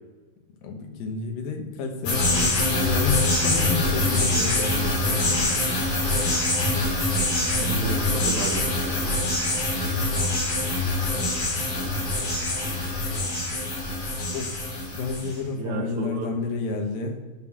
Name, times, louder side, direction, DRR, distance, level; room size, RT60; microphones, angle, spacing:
voice 1, 0.6-5.6 14.3-14.6 14.9-17.2, left 5 dB, 90° left, 3 dB, 2.9 m, -30 dB
sound 1, 2.1-15.3, left 2 dB, 70° left, 4.2 m, -24 dB
voice 2, 7.6-9.0 15.6-16.3, right 3 dB, 60° right, -2 dB, 2.6 m, -31 dB
10.5 x 3.8 x 6.1 m, 1.3 s
omnidirectional pair, 4.0 m